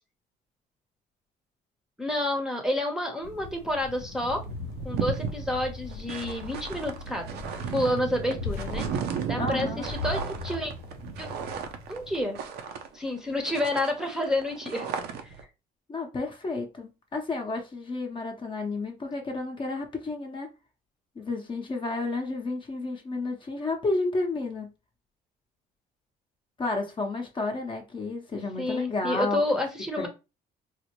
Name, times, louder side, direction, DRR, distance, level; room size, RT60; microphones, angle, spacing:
voice 1, 2.0-4.4 4.8-7.4 7.7-8.9 9.3-10.7 11.2-11.3 11.9-12.4 12.9-14.9 15.2-15.3 28.6-30.1, left 1 dB, 5° right, 0.8 m, -29 dB
sound 1, 3.2-12.4, left 3 dB, 85° left, 0.4 m, -40 dB
sound 2, 3.9-4.0 4.3-13.2 13.4-15.4, right 6 dB, 70° right, 0.6 m, -35 dB
voice 2, 9.4-9.9 15.9-20.5 21.2-24.7 26.6-29.4 30.0-30.1, left 3 dB, 30° left, 0.8 m, -31 dB
4.1 x 2.1 x 2.9 m
cardioid pair, 110°, 17 cm